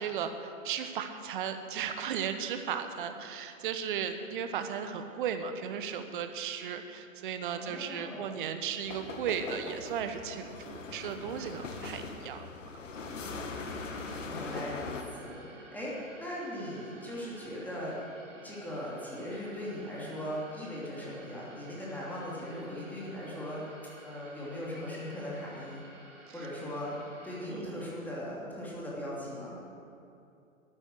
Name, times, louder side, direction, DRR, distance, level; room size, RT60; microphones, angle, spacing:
voice 1, 0.0-12.8 26.4-26.5 27.5-27.8, right 8 dB, 40° right, 8 dB, 1.1 m, -36 dB
voice 2, 7.5-8.3 14.2-18.0 18.3-23.7 24.0-25.8 26.3-29.6, left 1 dB, 5° left, -6 dB, 2.9 m, -39 dB
sound 1, 8.8-15.0, left 4 dB, 65° left, 1.6 m, -41 dB
sound 2, 13.3-27.5, right 2 dB, 65° right, 3.1 m, -54 dB
12.5 x 8.9 x 7.8 m, 2.6 s
figure-of-eight pair, 125°, 41 cm